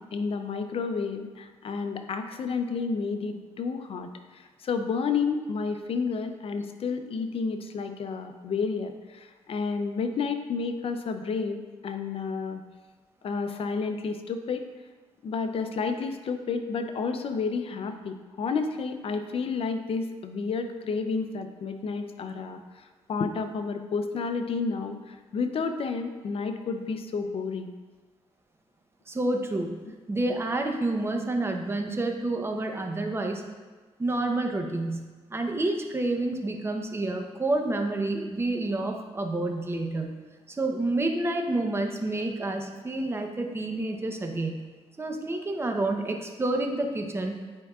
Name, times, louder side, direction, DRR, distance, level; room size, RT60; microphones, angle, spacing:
voice 1, 0.0-12.6 13.2-14.6 15.2-27.7, left 5 dB, 55° left, 7 dB, 0.6 m, -31 dB
voice 2, 29.1-29.8 30.1-33.4 34.0-35.0 35.3-40.1 40.5-44.6 45.0-47.3, right 2 dB, 20° right, 3 dB, 0.8 m, -29 dB
9.6 x 4.6 x 2.4 m, 1.3 s
cardioid pair, 80°, 12 cm